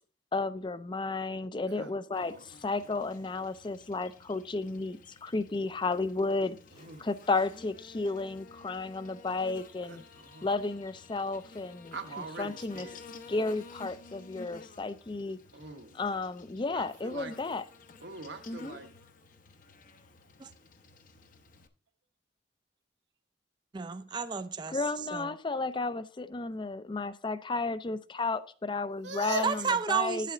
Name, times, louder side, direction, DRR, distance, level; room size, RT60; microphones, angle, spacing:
voice 1, 0.3-6.6 7.0-10.0 10.4-12.0 12.4-12.9 13.3-15.4 15.9-17.6 18.5-18.8 24.7-30.3, left 3 dB, 25° left, 0.5 m, -33 dB
Buzz, 2.1-21.7, left 3 dB, 50° left, 0.9 m, -53 dB
voice 2, 6.7-7.1 9.9-10.5 11.9-13.0 15.5-16.0 16.7-17.3 18.0-18.9 29.0-29.6, right 3 dB, 80° right, 1.2 m, -41 dB
voice 3, 23.7-24.8 25.1-25.4 29.4-30.3, right 6 dB, 25° right, 0.4 m, -31 dB
9.3 x 7.5 x 3.8 m
head